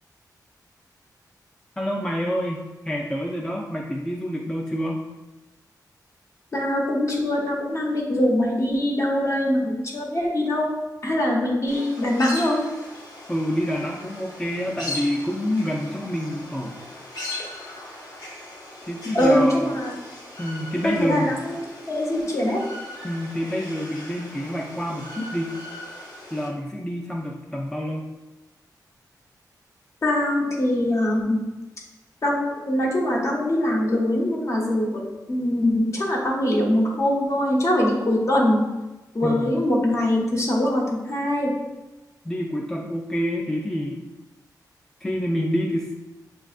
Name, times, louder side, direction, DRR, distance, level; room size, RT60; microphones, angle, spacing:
voice 1, 1.8-5.0 13.3-16.8 18.9-19.7 20.4-21.4 23.0-25.6 26.3-28.0 39.2-39.6 42.2-44.1 45.0-45.9, equal, 10° left, -2 dB, 0.4 m, -27 dB
voice 2, 6.5-10.7 11.0-12.6 19.1-19.9 20.8-21.6 21.9-22.6 30.0-31.4 32.2-35.0 35.3-38.6 39.1-41.5, left 1 dB, 45° left, -2 dB, 0.9 m, -22 dB
sound 1, 11.7-26.5, left 1 dB, 80° left, 1.0 m, -39 dB
6.9 x 2.3 x 2.4 m, 1.1 s
wide cardioid pair, 110°, 7 cm